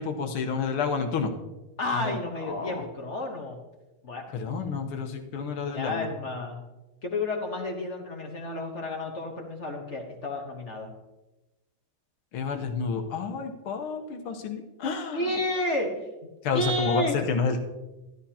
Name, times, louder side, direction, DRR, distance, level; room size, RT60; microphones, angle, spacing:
voice 1, 0.0-1.3 2.0-2.2 2.4-2.8 4.3-6.1 12.3-15.3 16.4-17.6, left 5 dB, 80° left, 5 dB, 1.9 m, -30 dB
voice 2, 1.8-3.6 4.0-4.3 5.6-6.6 7.0-10.9 15.1-16.1 16.5-17.2, left 1 dB, 45° left, 2 dB, 1.1 m, -31 dB
13.0 x 12.0 x 2.8 m, 1.1 s
omnidirectional pair, 2.4 m